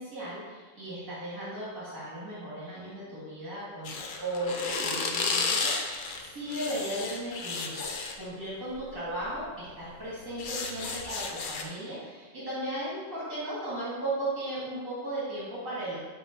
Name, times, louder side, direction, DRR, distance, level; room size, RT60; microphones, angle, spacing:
voice 1, 0.0-7.9 8.2-16.0, right 1 dB, 75° right, -9 dB, 2.1 m, -36 dB
sound 1, 3.8-8.2 9.2-9.4 9.8-11.6, left 4 dB, 60° left, 0.5 m, -32 dB
7.4 x 2.8 x 4.7 m, 1.4 s
omnidirectional pair, 1.5 m